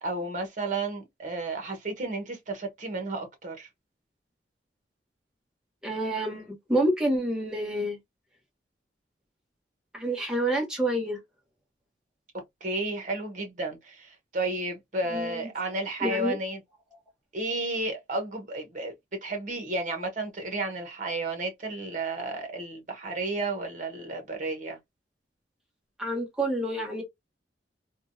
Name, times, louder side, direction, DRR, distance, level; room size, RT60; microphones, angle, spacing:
voice 1, 0.0-3.7 12.3-16.6 17.3-18.9 19.2-24.8, right 2 dB, 45° right, 1.0 m, -32 dB
voice 2, 5.8-8.0 9.9-11.2 15.1-15.4 16.0-16.4 26.0-27.0, right 1 dB, 5° right, 1.1 m, -28 dB
3.5 x 2.2 x 2.5 m
head